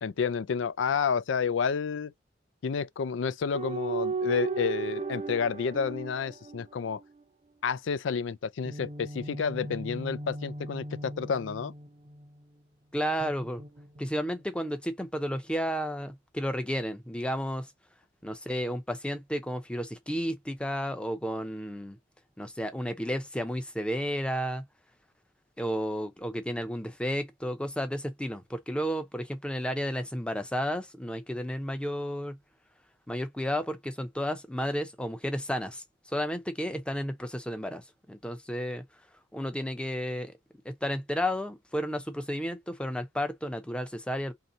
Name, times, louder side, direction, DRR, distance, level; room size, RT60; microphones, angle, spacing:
voice 1, 0.0-2.1 2.6-7.0 7.6-11.7, left 6 dB, 90° left, 0.4 m, -30 dB
sound 1, 3.5-7.2 8.7-12.4 13.2-14.4, right 4 dB, 35° right, 0.6 m, -36 dB
voice 2, 12.9-13.6 14.0-17.7 18.2-22.0 22.4-24.6 25.6-32.4 33.1-38.8 39.3-40.3 40.6-44.3, equal, 5° left, 0.6 m, -32 dB
3.2 x 2.8 x 3.8 m
head